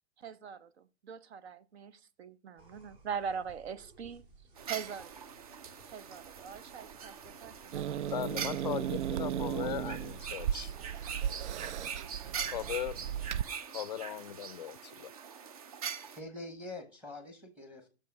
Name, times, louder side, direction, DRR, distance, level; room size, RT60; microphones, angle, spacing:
voice 1, 0.2-4.2 4.7-5.3 5.9-8.1, right 7 dB, 65° right, 0.9 m, -42 dB
sound 1, 2.6-11.3, right 3 dB, 50° right, 3.3 m, -58 dB
sound 2, 4.6-16.2, right 7 dB, 35° right, 0.4 m, -43 dB
Growling / Hiss, 7.7-13.4, right 10 dB, 90° right, 0.5 m, -36 dB
voice 2, 8.1-10.7 12.5-13.0 13.7-15.1, left 11 dB, 40° left, 0.4 m, -38 dB
voice 3, 16.1-17.9, left 2 dB, 5° right, 0.9 m, -45 dB
10.0 x 6.8 x 5.9 m
hypercardioid pair, 165°, 34 cm